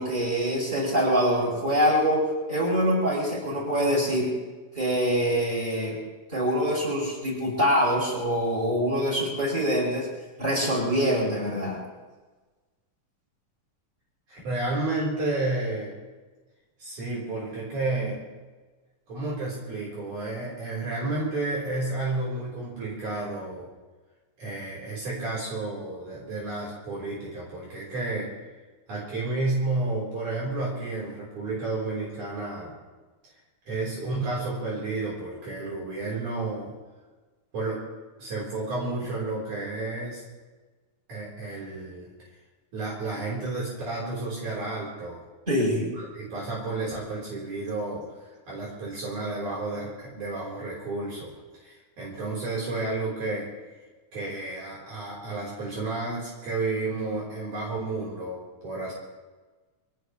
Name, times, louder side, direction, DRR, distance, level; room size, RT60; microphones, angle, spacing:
voice 1, 0.0-4.3 4.8-6.0 6.3-10.1 10.4-11.8 45.5-45.9, equal, 10° right, -5 dB, 7.7 m, -24 dB
voice 2, 14.3-15.9 16.8-18.2 19.1-23.7 24.4-28.3 28.9-32.8 33.7-36.7 37.5-37.8 38.2-40.2 41.1-42.1 42.7-45.2 45.7-48.0 48.5-51.3 51.6-53.5 54.1-58.9, right 2 dB, 55° right, -5 dB, 5.4 m, -31 dB
24.5 x 18.5 x 3.2 m, 1.3 s
omnidirectional pair, 4.2 m